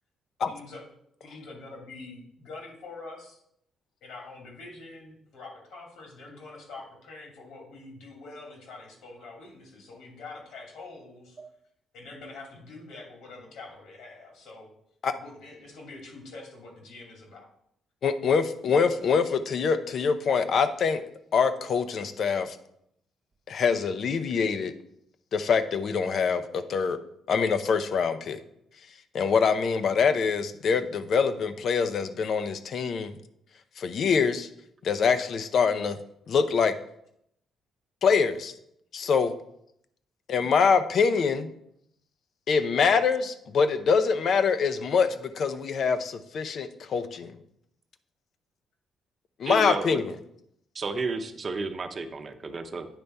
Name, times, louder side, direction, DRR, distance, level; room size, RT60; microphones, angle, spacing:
voice 1, 0.5-0.8 1.2-3.4 4.0-11.4 11.9-14.7 15.2-17.5, left 3 dB, 80° left, 0 dB, 2.4 m, -45 dB
voice 2, 18.0-21.0 21.3-22.6 23.5-24.7 25.3-27.0 27.3-28.4 29.1-33.2 33.8-34.5 34.8-36.0 36.3-36.7 38.0-38.5 38.9-39.3 40.3-41.5 42.5-47.3 49.4-50.1, left 5 dB, 60° left, 10 dB, 0.6 m, -24 dB
voice 3, 49.5-50.0 50.7-52.9, right 3 dB, 40° right, 6 dB, 0.8 m, -32 dB
8.8 x 3.4 x 5.4 m, 0.74 s
cardioid pair, 90°, 0 cm